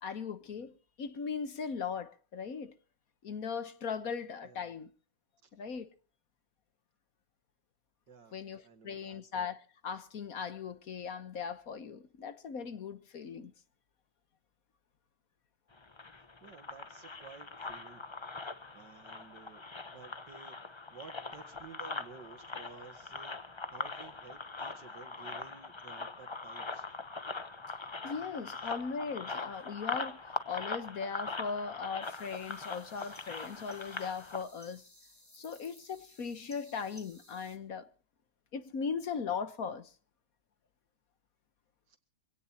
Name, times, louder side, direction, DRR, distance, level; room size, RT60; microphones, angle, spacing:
voice 1, 0.0-2.7 3.2-4.9 5.5-5.9 8.3-13.5 28.0-34.8 35.3-37.9 38.5-39.9, left 6 dB, 55° left, 1.4 m, -38 dB
voice 2, 4.4-4.7 5.4-5.5 8.1-9.2 16.4-18.0 18.7-20.6 20.9-23.4 23.7-26.9 28.6-28.7 41.9-42.0, right 5 dB, 75° right, 2.6 m, -53 dB
sound 1, 15.7-34.4, left 3 dB, 25° left, 0.6 m, -42 dB
sound 2, 32.0-37.6, left 1 dB, 10° left, 2.0 m, -59 dB
25.0 x 17.5 x 2.9 m
omnidirectional pair, 1.9 m